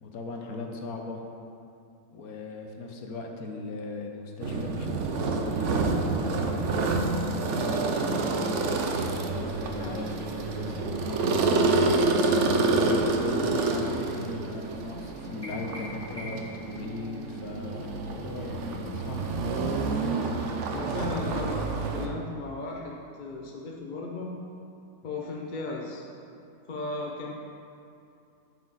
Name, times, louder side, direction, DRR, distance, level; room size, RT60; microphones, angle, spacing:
voice 1, 0.0-1.2 2.1-7.9 8.5-11.4 12.3-19.3 20.2-21.0, left 3 dB, 70° left, 2 dB, 1.4 m, -38 dB
sound 1, 4.4-22.1, right 3 dB, 60° right, 0.9 m, -28 dB
sound 2, 15.4-16.6, left 1 dB, 15° left, 2.5 m, -42 dB
voice 2, 20.7-24.3 25.0-26.0 26.7-27.3, left 3 dB, 45° left, -1 dB, 0.6 m, -35 dB
8.9 x 8.1 x 4.1 m, 2.6 s
omnidirectional pair, 1.6 m